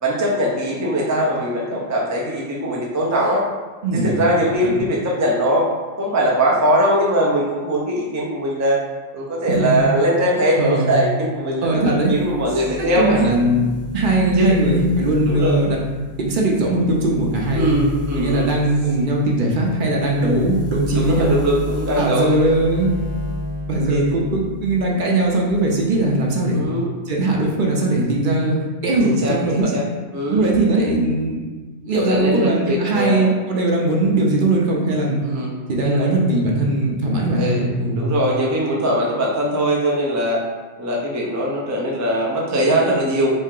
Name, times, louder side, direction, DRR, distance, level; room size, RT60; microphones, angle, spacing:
voice 1, 0.0-3.4 3.9-5.7 6.0-8.8 9.1-13.2 14.4-14.5 15.2-15.6 17.5-18.5 20.9-22.5 23.9-24.0 26.5-26.9 29.0-29.8 30.1-30.5 31.9-33.3 35.2-36.1 37.4-37.7 37.9-40.4 40.8-43.3, equal, 25° right, -3 dB, 0.4 m, -21 dB
voice 2, 3.8-4.2 4.6-4.8 9.5-9.8 10.6-11.0 11.6-12.1 12.8-13.7 13.9-15.8 16.2-17.7 18.2-21.4 22.0-22.9 23.7-26.6 27.1-28.6 28.8-29.7 30.3-35.2 35.7-38.2, right 2 dB, 55° right, -2 dB, 0.7 m, -19 dB
sound 1, 12.0-24.9 25.3-26.3, left 2 dB, 50° left, 0.5 m, -32 dB
3.1 x 2.8 x 3.6 m, 1.3 s
omnidirectional pair, 1.1 m